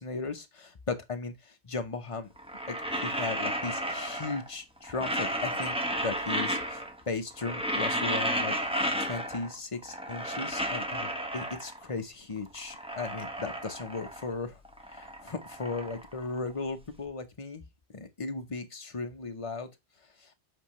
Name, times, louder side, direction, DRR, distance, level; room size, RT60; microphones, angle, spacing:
voice 1, 0.0-2.3 2.7-8.6 9.0-14.6 14.9-17.6 17.9-19.7 20.2-20.3, left 4 dB, 30° left, 0.9 m, -36 dB
sound 1, 2.4-4.5 4.8-7.0 7.3-9.5 9.8-11.9 12.4-14.4 14.6-16.8, equal, 5° right, 1.0 m, -33 dB
7.9 x 4.4 x 3.2 m
omnidirectional pair, 1.2 m